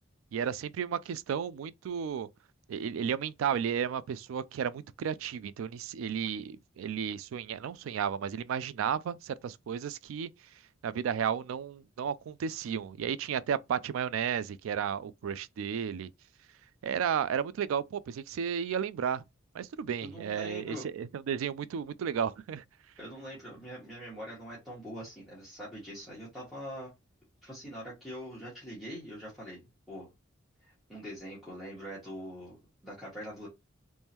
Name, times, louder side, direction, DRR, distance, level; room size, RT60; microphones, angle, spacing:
voice 1, 0.3-2.3 2.7-10.3 10.8-16.1 16.8-19.2 19.5-22.6, right 8 dB, 80° right, 0.3 m, -33 dB
voice 2, 20.0-20.9 23.0-26.9 27.4-30.1 30.6-33.5, equal, ahead, 1.1 m, -43 dB
3.5 x 3.1 x 2.9 m
head